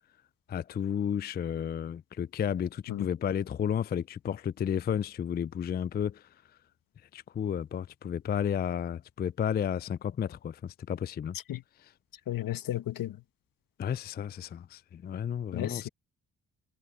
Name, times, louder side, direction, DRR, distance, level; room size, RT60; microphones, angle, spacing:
voice 1, 0.5-6.2 7.1-11.4 13.8-15.9, left 8 dB, 30° left, 0.4 m, -32 dB
voice 2, 12.3-13.2 15.5-15.9, left 13 dB, 70° left, 1.8 m, -33 dB
supercardioid pair, 60°, 35 cm